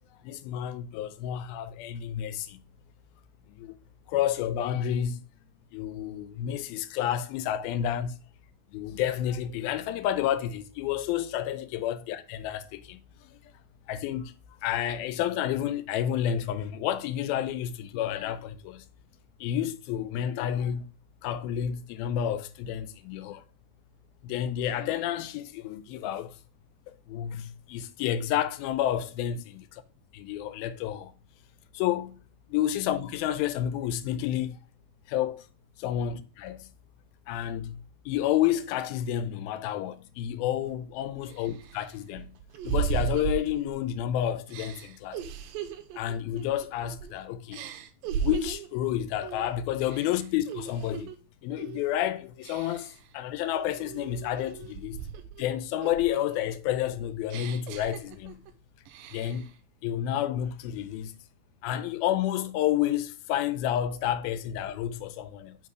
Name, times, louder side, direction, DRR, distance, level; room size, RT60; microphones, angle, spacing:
voice 1, 0.2-2.6 3.6-3.7 4.1-5.2 5.7-8.1 8.7-13.0 13.9-14.3 14.6-18.8 19.4-20.9 21.2-23.4 24.2-26.3 27.1-29.4 30.1-31.1 31.7-32.2 32.5-34.6 35.1-35.4 35.8-36.7 37.3-37.8 38.1-42.3 42.7-44.7 46.0-47.6 48.2-51.1 51.4-52.9 53.1-55.0 55.4-58.4 59.1-59.5 59.8-61.2 61.6-65.6, left 11 dB, 85° left, 2.4 m, -30 dB
sound 1, 40.6-40.7 41.3-44.0 44.5-47.1 47.5-48.8 49.2-49.5 49.9-51.2 51.6-51.9 52.4-53.0 53.5-55.4 55.8-58.5 58.9-59.5, right 8 dB, 80° right, 2.3 m, -36 dB
5.5 x 4.8 x 4.8 m
omnidirectional pair, 4.2 m